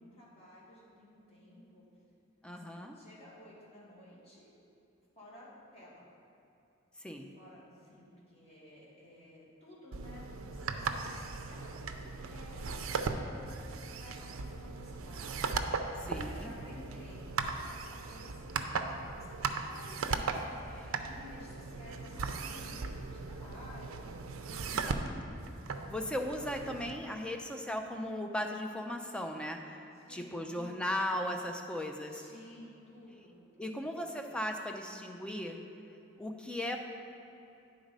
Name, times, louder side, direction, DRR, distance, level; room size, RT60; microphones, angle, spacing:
voice 1, 0.0-1.9 2.5-4.5 5.2-6.0 7.3-25.4 29.9-30.7 32.1-34.1, left 1 dB, 30° left, -7 dB, 1.9 m, -54 dB
voice 2, 2.4-3.0 7.0-7.3 16.0-16.5 20.7-20.9 24.9-25.0 25.8-29.8 30.1-32.3 33.6-35.6 36.2-36.8, left 1 dB, 5° left, 3 dB, 0.4 m, -37 dB
sound 1, 9.9-26.9, right 4 dB, 75° right, 0.5 m, -38 dB
9.2 x 4.0 x 5.2 m, 2.8 s
head